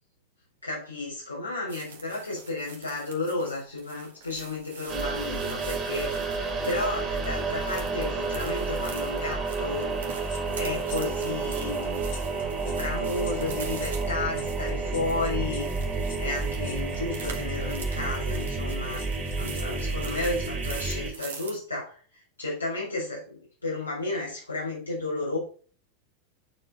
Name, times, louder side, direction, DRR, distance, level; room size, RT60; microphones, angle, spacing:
voice 1, 0.6-9.9 10.3-22.0 22.4-25.4, left 2 dB, 80° left, -5 dB, 4.1 m, -33 dB
sound 1, 1.7-21.6, right 6 dB, 60° right, 1.6 m, -45 dB
sound 2, 4.9-21.1, right 4 dB, 25° right, 2.2 m, -30 dB
sound 3, 10.3-20.8 21.1-21.3, left 5 dB, 55° left, 2.5 m, -47 dB
8.8 x 4.6 x 3.9 m, 0.41 s
figure-of-eight pair, 90°, 0 cm